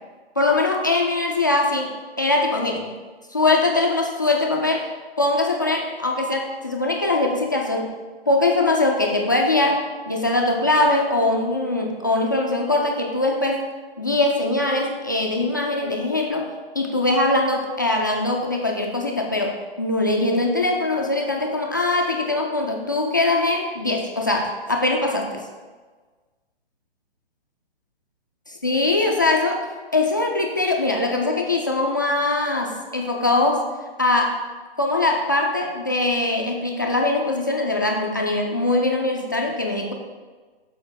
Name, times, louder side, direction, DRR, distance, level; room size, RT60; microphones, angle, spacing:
voice 1, 0.4-2.9 3.3-4.9 5.2-7.9 8.3-9.8 10.1-13.6 14.0-16.5 16.7-25.4 28.6-29.6 29.9-33.6 34.0-34.4 34.8-39.9, left 2 dB, 20° left, 0 dB, 0.3 m, -22 dB
7.2 x 4.2 x 6.2 m, 1.4 s
hypercardioid pair, 160°, 31 cm